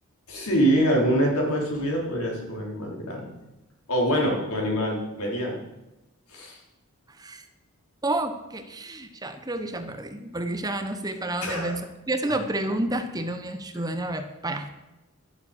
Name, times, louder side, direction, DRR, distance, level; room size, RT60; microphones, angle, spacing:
voice 1, 0.3-3.3 3.9-5.6 6.3-6.6 11.4-11.8, equal, 85° left, -1 dB, 3.9 m, -25 dB
voice 2, 8.0-14.7, right 1 dB, 15° right, 8 dB, 0.8 m, -30 dB
12.0 x 7.2 x 7.4 m, 0.99 s
head